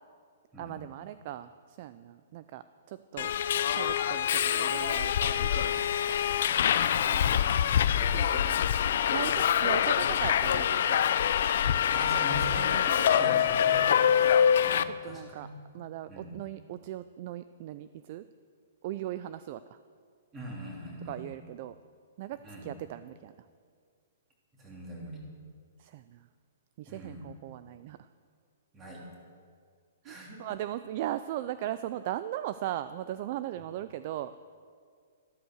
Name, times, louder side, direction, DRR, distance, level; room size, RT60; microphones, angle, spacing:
voice 1, 0.6-3.3 3.7-5.9 7.9-8.6 9.1-11.0 14.8-15.5 15.7-18.2 18.8-19.6 21.1-21.8 22.2-23.3 25.8-26.2 26.8-28.0 30.0-34.3, right 13 dB, 35° right, 13 dB, 0.3 m, -38 dB
Subway metro underground, 3.2-14.8, left 9 dB, 50° left, 0.5 m, -25 dB
voice 2, 6.9-8.0 9.5-9.6 11.8-15.6 16.1-16.4 20.3-21.2 22.4-22.7 24.5-25.2 26.8-27.2 28.7-29.0 30.0-30.4, equal, 15° right, -3 dB, 3.1 m, -41 dB
14.0 x 12.5 x 6.4 m, 2.1 s
hypercardioid pair, 170°, 0 cm